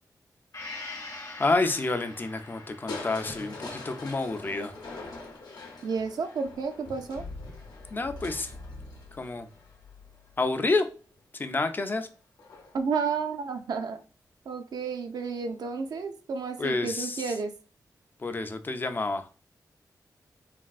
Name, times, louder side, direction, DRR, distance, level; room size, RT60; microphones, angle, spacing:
Gong, 0.5-8.2 8.6-8.7, left 3 dB, 50° left, 0.8 m, -46 dB
voice 1, 1.4-4.7 7.9-8.5 9.1-9.5 10.4-10.9 11.3-12.1 16.6-17.3 18.2-19.3, left 3 dB, 30° left, 8 dB, 0.3 m, -29 dB
Crushing, 2.9-10.8 12.4-12.9 13.4-13.5, left 3 dB, 80° left, 0.7 m, -43 dB
voice 2, 5.8-7.3 12.7-14.0 14.5-17.5, right 5 dB, 70° right, 6 dB, 0.4 m, -31 dB
3.4 x 2.3 x 2.3 m, 0.36 s
wide cardioid pair, 115°, 7 cm